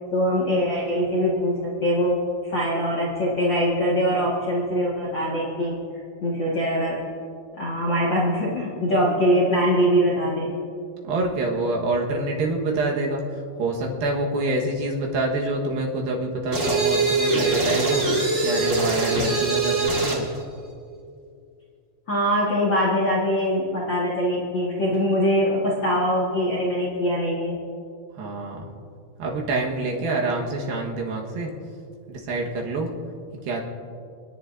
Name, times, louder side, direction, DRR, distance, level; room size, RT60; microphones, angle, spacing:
voice 1, 0.1-7.0 7.5-10.6 22.1-27.6, equal, 50° left, -6 dB, 1.4 m, -23 dB
voice 2, 11.0-13.2 13.6-18.0 18.4-20.3 28.2-28.7 29.2-31.5 32.1-32.9 33.5-33.6, right 2 dB, 70° right, -1 dB, 3.0 m, -26 dB
sound 1, 16.5-20.3, right 3 dB, 30° right, 1.4 m, -22 dB
29.5 x 10.0 x 2.6 m, 2.4 s
omnidirectional pair, 4.5 m